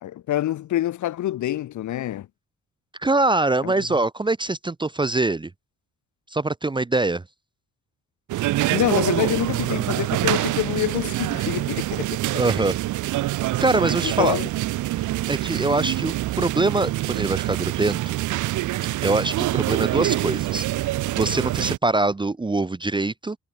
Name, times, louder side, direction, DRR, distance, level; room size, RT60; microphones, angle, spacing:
voice 1, 0.0-2.3 3.6-3.7 8.7-12.2 14.0-14.5, left 13 dB, 75° left, 1.7 m, -26 dB
voice 2, 3.0-5.5 6.3-7.2 12.3-12.8 13.6-14.4 15.3-18.1 19.0-23.4, right 2 dB, 15° right, 0.8 m, -23 dB
sound 1, 8.3-21.8, right 16 dB, 80° right, 0.9 m, -25 dB
cardioid pair, 90°, 30 cm